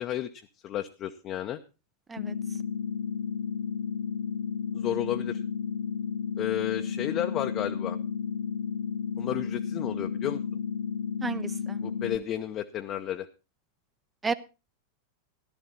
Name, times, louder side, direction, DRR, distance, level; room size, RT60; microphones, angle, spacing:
voice 1, 0.0-1.6 4.7-5.4 6.4-8.0 9.2-10.4 11.8-13.3, left 11 dB, 35° left, 7 dB, 0.8 m, -32 dB
sound 1, 2.2-12.2, left 7 dB, 65° left, 1.2 m, -32 dB
voice 2, 11.2-11.8 14.2-14.3, right 4 dB, 15° right, 13 dB, 0.6 m, -32 dB
14.5 x 12.0 x 4.1 m, 0.31 s
figure-of-eight pair, 90°, 0 cm